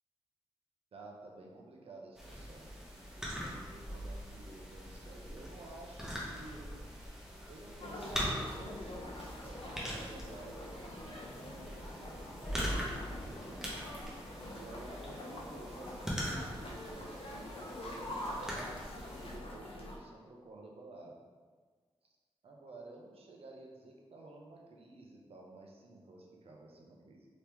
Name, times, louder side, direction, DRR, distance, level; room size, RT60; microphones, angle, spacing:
voice 1, 0.9-6.8 7.5-8.9 9.4-13.6 14.5-18.3 19.2-21.2 22.0-22.1 22.4-27.3, right 2 dB, 70° right, -1 dB, 0.6 m, -53 dB
sound 1, 2.2-19.4, equal, 5° right, 0.8 m, -42 dB
sound 2, 7.8-20.0, left 1 dB, 60° left, 0.7 m, -45 dB
2.9 x 2.9 x 3.4 m, 1.5 s
wide cardioid pair, 95°, 10 cm